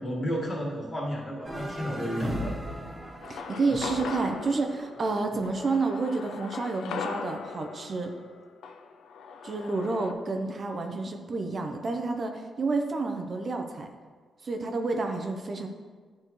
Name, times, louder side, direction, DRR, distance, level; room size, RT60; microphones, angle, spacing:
voice 1, 0.0-2.6, equal, 40° left, -3 dB, 1.8 m, -32 dB
sound 1, 1.4-5.7, right 1 dB, 25° right, 1.5 m, -37 dB
sound 2, 3.2-10.1, left 5 dB, 90° left, 0.4 m, -39 dB
voice 2, 3.3-8.1 9.4-13.9 14.4-15.7, right 3 dB, 50° right, 4 dB, 0.7 m, -30 dB
9.9 x 4.2 x 3.2 m, 1.5 s
cardioid pair, 75°, 0 cm